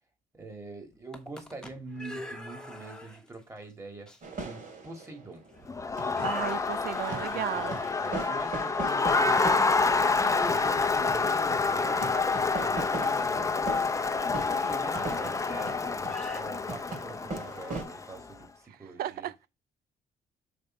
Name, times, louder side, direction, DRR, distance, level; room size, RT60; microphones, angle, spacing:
voice 1, 0.3-4.1 4.4-5.4 5.9-6.2 7.3-9.4 9.7-14.0 14.4-15.8 16.3-19.3, right 2 dB, 20° right, 2.4 m, -44 dB
sound 1, 0.9-3.4 4.1-4.2 5.0-5.1 5.5-5.7 6.1-9.7 12.9-13.1 14.8-14.9 16.0-16.4, left 2 dB, 5° left, 1.2 m, -44 dB
sound 2, 4.2-6.7 7.1-17.8, right 3 dB, 55° right, 3.0 m, -40 dB
Crowd, 5.7-18.2, left 4 dB, 20° left, 0.7 m, -28 dB
voice 2, 6.2-7.7 19.0-19.3, right 11 dB, 75° right, 0.5 m, -34 dB
6.7 x 3.5 x 4.6 m
cardioid pair, 80°, 16 cm